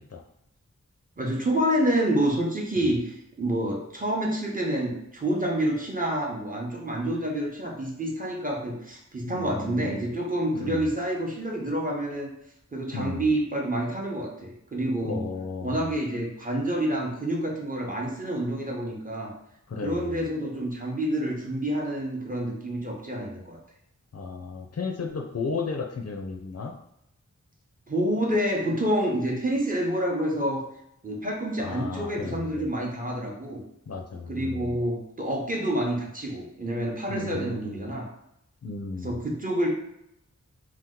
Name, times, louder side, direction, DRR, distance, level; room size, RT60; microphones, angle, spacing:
voice 1, 1.2-12.3 12.7-15.2 15.6-19.3 19.8-23.6 27.9-30.6 31.0-33.6 34.3-38.1 39.0-39.7, right 1 dB, 25° right, -1 dB, 0.7 m, -28 dB
voice 2, 9.3-10.1 10.5-10.9 12.9-13.3 15.0-15.9 19.7-20.2 24.1-26.7 31.6-32.7 33.9-34.8 37.1-37.9 38.6-39.2, left 4 dB, 55° left, 2 dB, 0.4 m, -34 dB
2.8 x 2.1 x 3.6 m, 0.80 s
wide cardioid pair, 55°, 31 cm